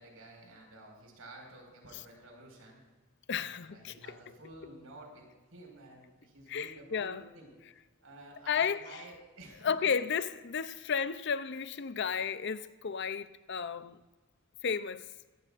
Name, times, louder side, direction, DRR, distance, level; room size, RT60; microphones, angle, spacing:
voice 1, 0.0-2.8 3.4-7.5 8.0-9.9, right 2 dB, 80° right, 5.1 m, -52 dB
voice 2, 3.3-3.9 6.5-7.3 8.5-9.0 9.6-14.0 14.6-15.1, left 6 dB, 55° left, 0.6 m, -33 dB
21.5 x 16.5 x 2.5 m
head